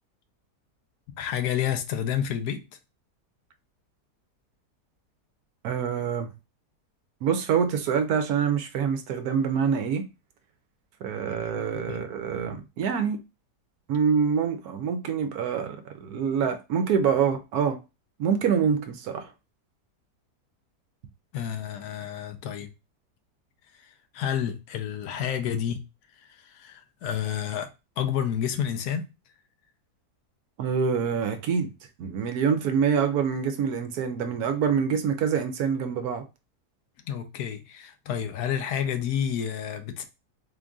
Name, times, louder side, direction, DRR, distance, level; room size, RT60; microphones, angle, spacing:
voice 1, 1.2-2.6 11.3-11.5 11.9-12.1 21.3-22.7 23.8-25.8 26.3-27.7 28.0-29.1 37.1-40.0, left 9 dB, 75° left, 1.1 m, -30 dB
voice 2, 5.6-6.3 7.2-10.1 11.0-13.2 13.9-17.8 18.2-19.3 30.6-31.7 32.0-36.2, right 7 dB, 70° right, 1.0 m, -26 dB
3.8 x 2.5 x 3.5 m
omnidirectional pair, 1.8 m